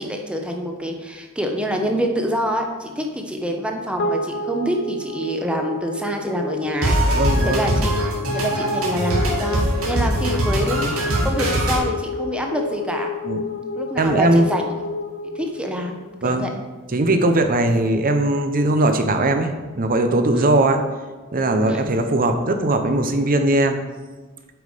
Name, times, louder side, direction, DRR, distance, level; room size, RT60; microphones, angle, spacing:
voice 1, 0.0-7.0 7.4-8.0 8.3-13.1 13.8-14.8 15.3-16.5 20.3-20.5 21.7-21.9, equal, 5° right, 2 dB, 0.8 m, -26 dB
sound 1, 4.0-16.5, left 3 dB, 55° left, 0.7 m, -30 dB
sound 2, 6.8-11.8, right 1 dB, 75° right, 2.2 m, -22 dB
voice 2, 7.0-7.7 13.2-13.4 14.0-14.5 16.2-16.5 16.9-20.8 21.3-23.8, right 2 dB, 40° right, 6 dB, 0.8 m, -19 dB
7.9 x 5.4 x 5.0 m, 1.3 s
head